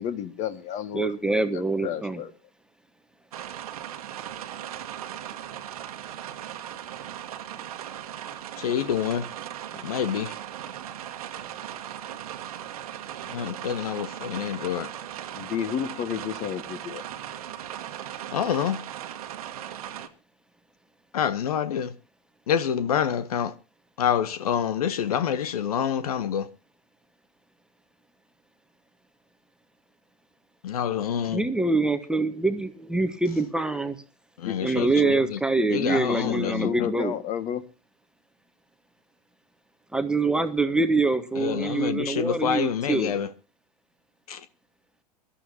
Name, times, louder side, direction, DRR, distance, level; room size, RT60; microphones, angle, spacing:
voice 1, 0.0-1.1 1.5-2.3 15.3-17.0 34.4-35.1 36.1-37.6 41.5-41.6, left 8 dB, 35° left, 1.8 m, -32 dB
voice 2, 0.9-2.2 31.3-34.0 34.6-37.1 39.9-43.2, right 3 dB, 5° right, 1.2 m, -25 dB
sound 1, 3.3-20.1, right 11 dB, 60° right, 1.5 m, -38 dB
voice 3, 8.6-9.3 9.8-10.3 13.3-14.9 18.3-18.8 21.1-21.9 22.5-23.5 24.0-26.5 30.6-31.4 34.4-35.4 35.7-36.9 41.4-43.3 44.3-44.4, left 8 dB, 65° left, 0.9 m, -27 dB
24.0 x 12.5 x 2.8 m
figure-of-eight pair, 95°, 21 cm